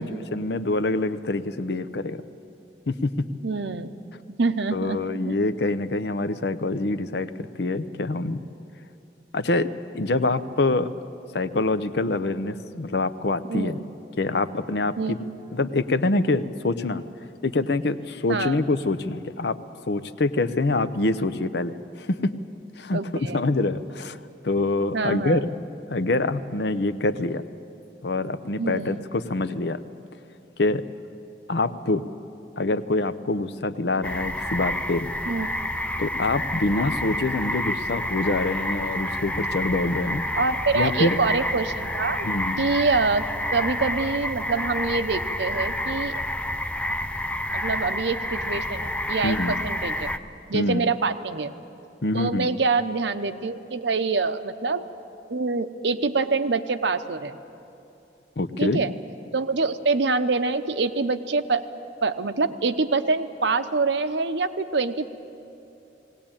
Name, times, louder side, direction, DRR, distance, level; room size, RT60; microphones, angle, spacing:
voice 1, 0.3-2.2 2.9-3.3 4.7-7.3 7.6-8.4 9.3-9.7 9.9-10.9 11.3-13.8 14.2-15.2 15.5-17.0 17.4-19.6 19.9-22.3 22.8-24.2 24.4-25.4 25.9-27.5 28.0-29.8 30.6-30.8 31.5-32.0 32.6-35.1 36.0-40.2 40.7-41.2 42.2-42.7 49.2-49.5 50.5-50.9 52.0-52.5 58.4-58.8, left 2 dB, 65° left, 12 dB, 0.7 m, -25 dB
voice 2, 3.4-3.9 4.4-5.0 13.5-13.8 15.0-15.1 18.3-18.6 22.9-23.5 24.9-25.4 28.6-29.0 35.3-35.5 40.3-42.3 42.6-43.2 43.5-46.2 47.5-50.1 50.5-51.5 52.1-54.8 55.3-57.4 58.6-58.9 59.3-61.6 62.0-65.1, right 4 dB, 75° right, 10 dB, 0.8 m, -25 dB
sound 1, 34.0-50.2, left 1 dB, 5° left, 0.5 m, -29 dB
19.5 x 17.5 x 8.9 m, 2.8 s
head